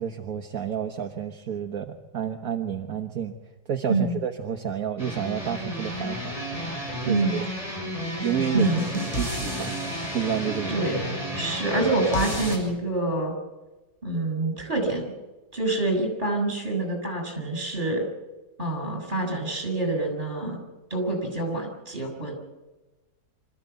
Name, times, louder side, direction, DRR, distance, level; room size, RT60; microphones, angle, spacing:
voice 1, 0.0-3.3 3.7-6.3 7.0-7.4 8.2-8.7 9.2-9.8 10.1-10.7, right 8 dB, 60° right, 4 dB, 1.6 m, -30 dB
sound 1, 5.0-12.6, equal, 20° left, 6.1 m, -31 dB
voice 2, 7.0-7.4 8.5-8.9 10.7-11.0 11.4-13.3 14.0-15.1 15.5-18.1 18.6-20.6 20.9-22.3, right 2 dB, 30° right, 3 dB, 7.1 m, -26 dB
26.0 x 14.5 x 8.2 m, 1.1 s
omnidirectional pair, 1.7 m